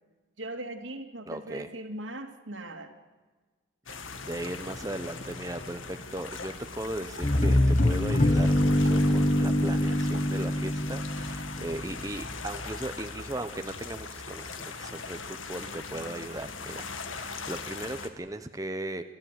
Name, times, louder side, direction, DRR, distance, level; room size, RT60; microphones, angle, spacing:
voice 1, 0.4-2.9, right 1 dB, 75° right, 5 dB, 2.7 m, -39 dB
voice 2, 1.3-1.7 4.2-16.9 17.2-19.0, right 1 dB, 15° right, 7 dB, 0.9 m, -37 dB
sound 1, 3.9-18.1, left 4 dB, 85° left, 2.2 m, -40 dB
sound 2, 7.2-12.0, left 1 dB, 40° left, 1.2 m, -24 dB
27.5 x 14.5 x 9.3 m, 1.3 s
head